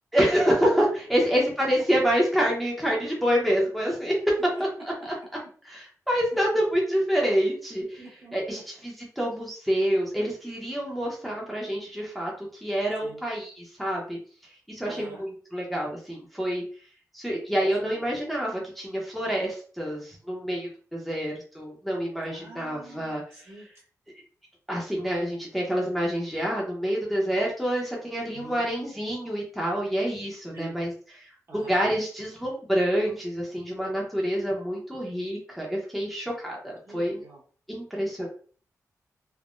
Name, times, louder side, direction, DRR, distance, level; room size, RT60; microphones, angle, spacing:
voice 1, 0.1-4.1 4.8-5.1 5.6-8.0 8.3-14.2 14.7-16.6 17.1-23.2 24.7-37.2 37.7-38.3, equal, ahead, -3 dB, 0.7 m, -27 dB
voice 2, 8.0-8.6 13.0-13.2 14.8-15.2 17.6-18.1 22.3-23.7 28.3-28.6 30.5-30.7 31.5-31.8 36.8-37.4 38.2-38.3, right 2 dB, 50° right, -4 dB, 1.1 m, -46 dB
3.5 x 2.1 x 2.5 m, 0.43 s
wide cardioid pair, 130°, 6 cm